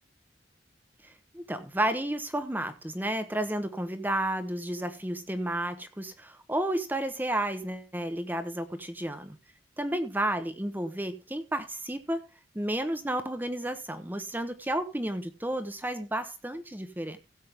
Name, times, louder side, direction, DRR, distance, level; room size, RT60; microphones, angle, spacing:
voice 1, 1.0-9.4 9.8-12.2 12.5-17.2, right 1 dB, 10° right, 8 dB, 0.9 m, -32 dB
16.5 x 7.5 x 3.6 m, 0.31 s
head